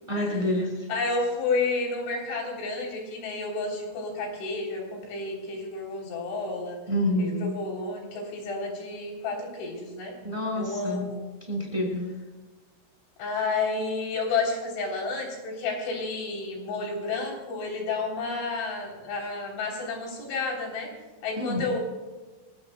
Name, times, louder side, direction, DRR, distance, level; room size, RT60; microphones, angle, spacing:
voice 1, 0.1-0.9 6.9-7.6 10.2-11.1 11.4-12.1 21.4-21.6, left 1 dB, 5° right, -1 dB, 4.8 m, -28 dB
voice 2, 0.9-6.8 7.2-10.1 10.6-11.2 13.2-20.9 21.2-21.8, left 3 dB, 75° left, 0 dB, 6.1 m, -31 dB
25.5 x 19.5 x 2.3 m, 1.3 s
omnidirectional pair, 5.5 m